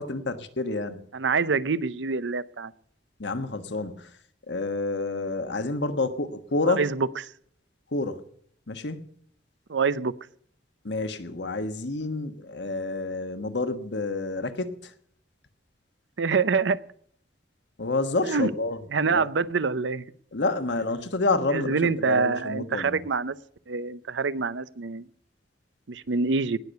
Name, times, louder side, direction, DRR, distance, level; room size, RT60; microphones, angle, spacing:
voice 1, 0.0-1.0 3.2-4.1 4.5-6.8 7.9-8.2 8.7-9.0 10.8-14.9 17.8-18.8 19.1-19.3 20.3-23.0, left 3 dB, 75° left, 9 dB, 1.3 m, -29 dB
voice 2, 1.1-2.7 6.7-7.3 9.7-10.1 16.2-16.8 18.2-18.5 18.9-20.0 21.5-23.3 23.7-25.1 25.9-26.6, right 4 dB, 90° right, 17 dB, 0.7 m, -26 dB
19.0 x 6.8 x 7.9 m, 0.65 s
head